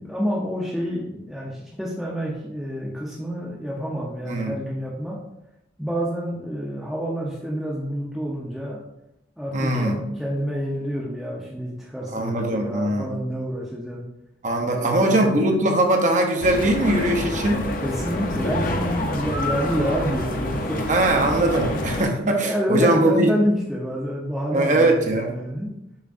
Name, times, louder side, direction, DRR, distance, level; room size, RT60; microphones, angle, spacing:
voice 1, 0.0-5.2 5.8-8.8 9.4-14.0 14.7-15.4 17.8-20.8 21.1-21.5 22.1-25.7, equal, ahead, -6 dB, 0.8 m, -28 dB
voice 2, 4.3-4.6 9.5-10.0 12.1-13.1 14.4-17.7 20.9-23.3 24.5-25.4, right 1 dB, 40° right, 2 dB, 0.7 m, -21 dB
sound 1, 16.4-22.0, left 1 dB, 45° left, 0.7 m, -27 dB
7.1 x 5.2 x 2.6 m, 0.83 s
head